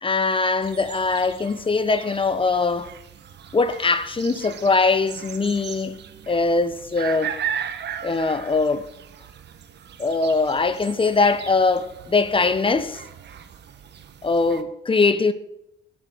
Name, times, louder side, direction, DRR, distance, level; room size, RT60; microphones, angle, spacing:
voice 1, 0.0-2.9 3.5-6.0 6.3-7.3 8.0-8.9 10.0-13.0 14.2-15.3, left 3 dB, 25° left, 1.1 m, -21 dB
sound 1, 0.6-14.6, right 8 dB, 60° right, 1.2 m, -37 dB
21.5 x 8.1 x 4.8 m
cardioid pair, 90°, 20 cm